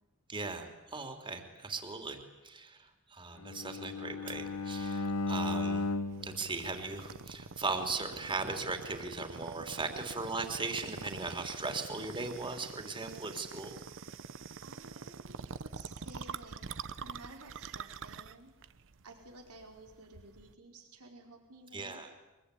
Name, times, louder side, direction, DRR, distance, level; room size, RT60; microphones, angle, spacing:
voice 1, 0.3-5.8 6.2-13.7 21.7-22.1, right 3 dB, 25° right, 5 dB, 3.3 m, -38 dB
Bowed string instrument, 3.4-7.6, left 3 dB, 90° left, 1.0 m, -36 dB
sound 1, 4.3-20.5, right 5 dB, 60° right, 0.9 m, -46 dB
voice 2, 14.6-18.5 19.0-22.2, right 2 dB, 90° right, 2 dB, 4.8 m, -54 dB
24.0 x 22.5 x 9.9 m, 1.1 s
head